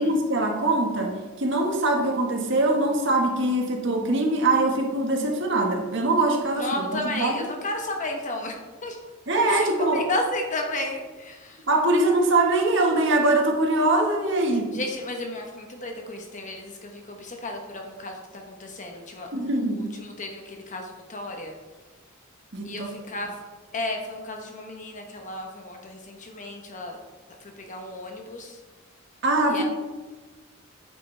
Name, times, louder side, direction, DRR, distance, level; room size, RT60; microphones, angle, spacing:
voice 1, 0.0-7.5 9.3-10.1 11.7-14.7 19.3-19.9 22.5-22.9 29.2-29.6, right 2 dB, 60° right, 1 dB, 1.5 m, -23 dB
voice 2, 6.6-8.5 8.8-9.0 9.5-11.6 14.7-21.5 22.6-23.3 23.7-27.0 27.7-28.6 29.5-29.6, left 2 dB, 40° left, 2 dB, 1.0 m, -33 dB
9.2 x 8.8 x 3.3 m, 1.3 s
head